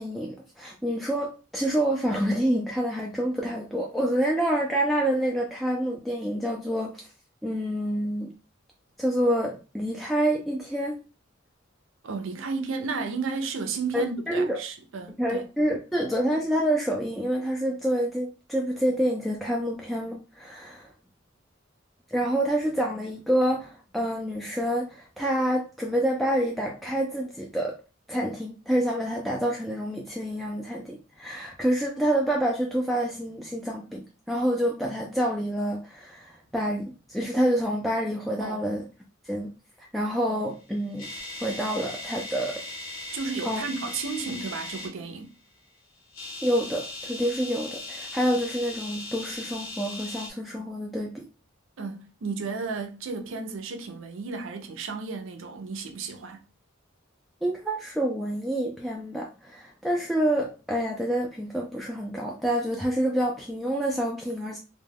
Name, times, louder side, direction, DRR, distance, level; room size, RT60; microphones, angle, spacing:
voice 1, 0.0-7.0 7.4-8.3 9.0-11.0 13.9-14.0 14.3-14.6 15.2-20.9 22.1-27.8 28.1-38.8 39.2-39.5 39.9-41.1 41.4-42.6 43.4-43.6 46.4-51.2 57.4-64.6, right 1 dB, ahead, 0.3 m, -27 dB
voice 2, 12.0-15.5 38.4-38.6 43.1-45.3 51.8-56.4, right 4 dB, 70° right, 0.5 m, -33 dB
sound 1, 40.5-44.9 46.0-50.3, left 2 dB, 80° left, 0.7 m, -38 dB
2.2 x 2.2 x 3.4 m
head